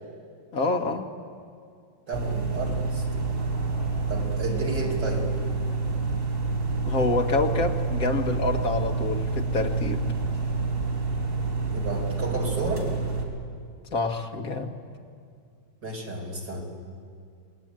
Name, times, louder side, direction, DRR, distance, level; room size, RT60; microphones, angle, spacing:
voice 1, 0.5-1.1 6.8-10.0 13.9-14.8, left 3 dB, 50° left, 3 dB, 2.0 m, -27 dB
sound 1, 2.1-13.2, right 4 dB, 40° right, 4.3 m, -28 dB
voice 2, 2.1-3.4 4.1-5.3 11.7-12.9 15.8-16.6, right 2 dB, 65° right, 0 dB, 5.4 m, -32 dB
28.0 x 20.5 x 9.1 m, 2.3 s
omnidirectional pair, 2.1 m